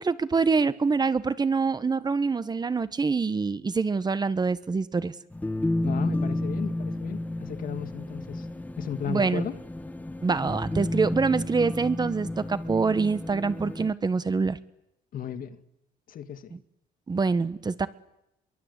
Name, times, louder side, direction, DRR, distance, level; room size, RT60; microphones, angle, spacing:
voice 1, 0.0-5.1 9.1-9.4 10.2-14.6 17.1-17.9, right 4 dB, 25° right, 14 dB, 1.3 m, -25 dB
sound 1, 5.3-13.9, left 2 dB, 10° left, 1.2 m, -31 dB
voice 2, 5.8-8.5 8.8-9.6 15.1-15.6 16.1-16.5, left 9 dB, 55° left, 10 dB, 2.4 m, -35 dB
28.5 x 23.0 x 8.4 m, 0.81 s
cardioid pair, 110°, 17 cm